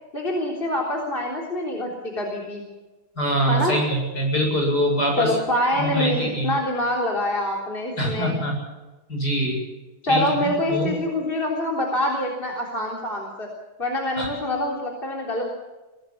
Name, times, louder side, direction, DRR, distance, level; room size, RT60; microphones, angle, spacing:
voice 1, 0.1-2.6 3.5-3.8 5.2-8.4 10.1-13.5 13.8-15.5, left 1 dB, 25° left, -1 dB, 3.8 m, -25 dB
voice 2, 3.2-5.3 5.8-6.5 8.0-8.5 9.1-9.6 10.0-10.9 14.2-14.3, equal, 50° left, 1 dB, 8.2 m, -24 dB
23.5 x 18.5 x 7.3 m, 1.1 s
omnidirectional pair, 2.2 m